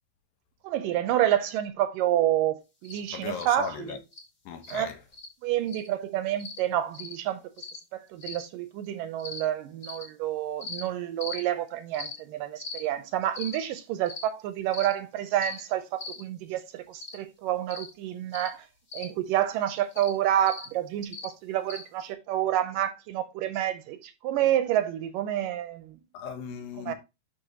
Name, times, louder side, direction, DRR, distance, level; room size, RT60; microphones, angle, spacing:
voice 1, 0.6-4.0 4.7-4.9 5.4-7.5 7.9-18.7 18.9-26.0 26.8-26.9, right 12 dB, 75° right, 2.2 m, -28 dB
sound 1, 2.8-3.0 3.3-3.5 4.1-4.2 4.6-4.8 5.1-5.3 5.7-5.9 6.4-6.6 6.9-7.1 7.6-7.8 8.2-8.4 9.2-9.4 9.8-10.0 10.6-10.8 11.2-11.4 11.9-12.1 12.6-12.8 13.3-13.5 14.1-14.2 14.7-14.9 15.4-15.6 16.0-16.2 17.0-17.2 17.7-17.9 18.3-18.5 18.9-19.1 19.9-20.1 20.5-20.7 21.1-21.3 21.7-21.8, left 4 dB, 30° left, 1.2 m, -39 dB
voice 2, 3.1-4.0 4.5-5.0 26.1-26.9, left 7 dB, 75° left, 2.9 m, -36 dB
11.0 x 5.4 x 2.9 m
omnidirectional pair, 4.2 m